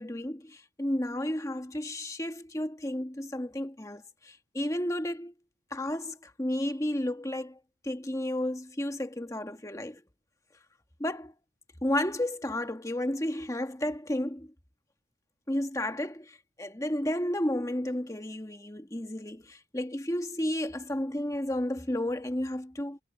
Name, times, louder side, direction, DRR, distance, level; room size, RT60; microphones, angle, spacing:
voice 1, 0.0-5.3 5.7-7.6 7.8-10.0 11.0-11.3 11.8-14.5 15.5-23.0, left 1 dB, 15° left, 1.3 m, -32 dB
head